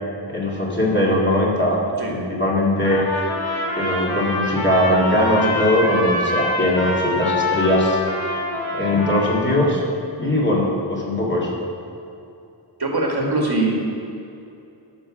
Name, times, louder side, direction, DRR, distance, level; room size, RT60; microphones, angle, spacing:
voice 1, 0.3-1.8 2.1-3.0 3.8-8.0 8.7-9.8 10.2-11.5, left 1 dB, 25° left, -4 dB, 2.4 m, -20 dB
Trumpet, 2.8-9.6, left 2 dB, 80° left, 2.2 m, -25 dB
voice 2, 12.8-13.7, right 2 dB, 55° right, 0 dB, 1.8 m, -21 dB
12.5 x 5.8 x 6.3 m, 2.7 s
wide cardioid pair, 95°, 46 cm